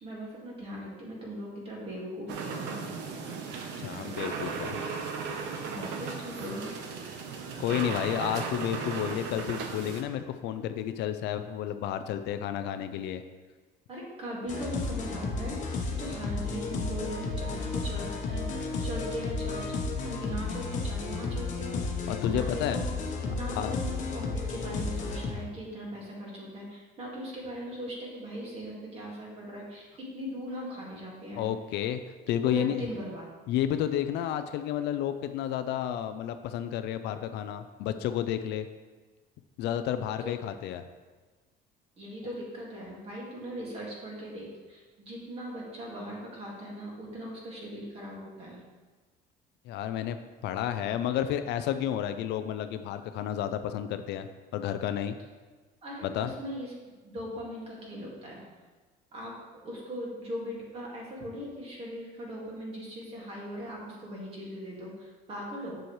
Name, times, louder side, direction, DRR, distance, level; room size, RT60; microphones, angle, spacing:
voice 1, 0.0-2.8 5.6-6.7 13.9-22.9 23.3-31.4 32.4-33.3 40.2-40.3 42.0-48.6 55.8-58.4 59.1-59.3 59.6-65.8, equal, 30° right, -4 dB, 2.1 m, -39 dB
sound 1, 2.3-10.0, right 5 dB, 65° right, 0.9 m, -36 dB
voice 2, 3.8-4.8 7.6-13.2 22.1-22.8 23.5-23.8 31.4-32.0 32.3-32.9 33.5-38.7 39.6-40.8 49.7-50.2 50.4-55.2 56.0-56.3, left 10 dB, 60° left, 10 dB, 0.4 m, -31 dB
sound 2, 14.5-25.3, left 3 dB, 40° left, 1.1 m, -33 dB
7.5 x 7.0 x 3.2 m, 1.3 s
cardioid pair, 165°, 20 cm